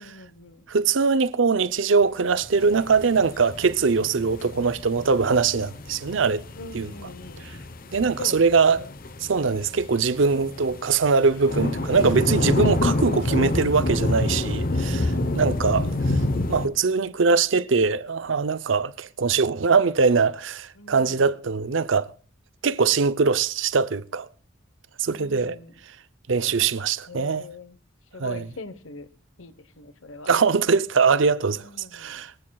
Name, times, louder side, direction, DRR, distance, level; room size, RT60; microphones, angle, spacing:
voice 1, 0.0-0.6 6.6-7.5 8.2-8.9 15.2-16.0 20.7-21.3 25.1-25.7 27.1-27.8 28.1-29.1 29.4-30.3 31.5-32.2, left 3 dB, 80° left, 1.1 m, -42 dB
voice 2, 0.7-6.4 6.7-6.9 7.4-7.5 7.9-8.9 9.2-16.2 16.5-22.1 22.6-24.3 25.0-25.6 26.3-27.4 28.2-28.5 30.3-31.7 31.9-32.3, right 5 dB, 65° right, 0.6 m, -22 dB
sound 1, 2.4-16.7, left 2 dB, 45° left, 0.9 m, -28 dB
22.5 x 15.0 x 2.3 m
head